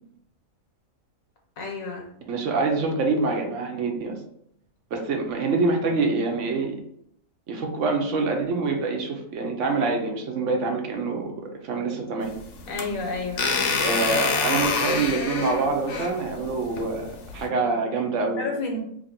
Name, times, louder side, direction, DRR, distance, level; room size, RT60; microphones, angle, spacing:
voice 1, 1.6-2.1 12.7-13.5 18.4-18.8, left 3 dB, 85° left, 1 dB, 1.3 m, -30 dB
voice 2, 2.3-4.2 4.9-6.8 7.5-12.3 13.8-18.5, right 3 dB, 70° right, 3 dB, 0.9 m, -26 dB
sound 1, 12.2-17.5, left 4 dB, 65° left, 0.9 m, -27 dB
2.9 x 2.6 x 4.1 m, 0.72 s
omnidirectional pair, 1.4 m